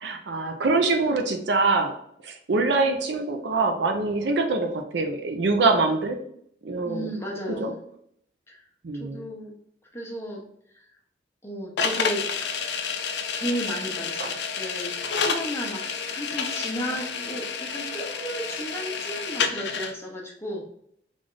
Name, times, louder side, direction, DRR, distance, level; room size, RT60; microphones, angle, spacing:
voice 1, 0.0-1.9 2.2-6.2 6.6-7.1 7.6-7.7 8.8-9.2 14.2-14.3, right 3 dB, 65° right, 5 dB, 0.5 m, -24 dB
voice 2, 6.8-7.8 8.5-8.6 9.0-9.5 9.9-10.4 11.4-12.3 13.4-20.7, equal, 15° left, -2 dB, 0.8 m, -34 dB
sound 1, 11.8-19.9, left 5 dB, 65° left, 0.4 m, -29 dB
3.3 x 2.5 x 3.8 m, 0.69 s
head